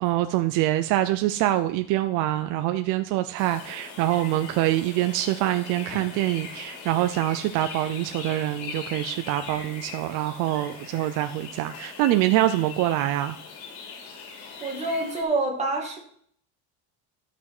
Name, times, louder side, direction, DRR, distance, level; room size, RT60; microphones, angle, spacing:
voice 1, 0.0-13.4, right 14 dB, 60° right, 9 dB, 0.6 m, -25 dB
sound 1, 3.4-15.2, left 5 dB, 75° left, 3.5 m, -41 dB
voice 2, 14.6-16.0, right 2 dB, 20° right, -1 dB, 2.3 m, -27 dB
12.0 x 6.2 x 6.0 m, 0.63 s
cardioid pair, 175°, 35 cm